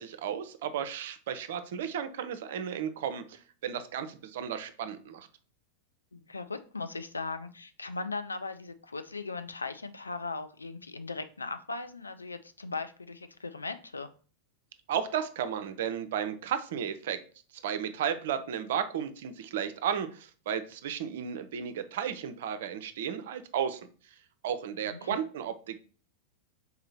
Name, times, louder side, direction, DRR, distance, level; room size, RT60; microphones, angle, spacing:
voice 1, 0.0-5.3 14.9-17.2 17.6-23.8 24.4-25.8, right 8 dB, 55° right, 10 dB, 0.4 m, -34 dB
voice 2, 6.1-14.1 24.9-25.2, left 3 dB, 80° left, 9 dB, 0.3 m, -38 dB
4.0 x 2.7 x 4.0 m, 0.40 s
figure-of-eight pair, 90°, 0 cm